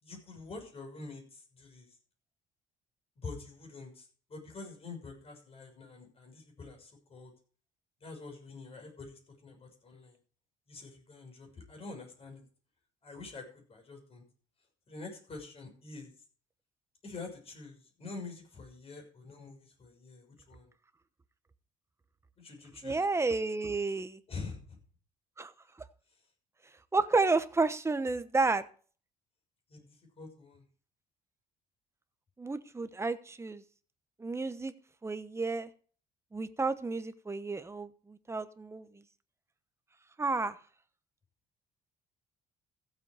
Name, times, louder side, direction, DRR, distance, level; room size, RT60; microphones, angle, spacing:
voice 1, 0.0-1.9 3.2-7.3 8.0-10.2 10.7-12.4 13.0-14.2 14.9-16.1 17.0-20.7 22.4-23.0 24.3-24.8 29.7-30.6, left 3 dB, 35° left, 3 dB, 6.7 m, -46 dB
voice 2, 22.8-24.2 25.4-25.5 26.9-28.6 32.4-33.6 34.2-34.7 35.0-35.7 36.3-39.0 40.2-40.6, right 3 dB, 15° right, 11 dB, 1.1 m, -31 dB
15.0 x 7.7 x 4.9 m, 0.42 s
cardioid pair, 110°, 17 cm